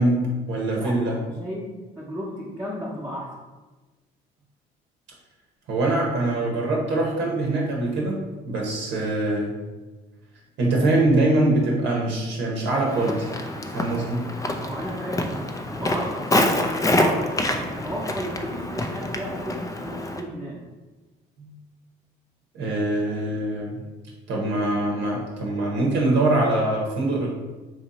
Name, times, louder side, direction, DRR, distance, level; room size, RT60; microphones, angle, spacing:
voice 1, 0.0-1.2 5.7-9.5 10.6-13.3 13.7-14.3 21.4-21.5 22.5-23.8 24.3-27.3, right 2 dB, 70° right, -2 dB, 0.8 m, -23 dB
voice 2, 0.7-3.3 14.6-16.3 16.6-20.6, equal, 10° right, -6 dB, 0.9 m, -34 dB
Walk footsteps, 12.8-20.2, left 1 dB, 15° left, 0.4 m, -26 dB
3.1 x 2.6 x 4.0 m, 1.2 s
supercardioid pair, 75°, 19 cm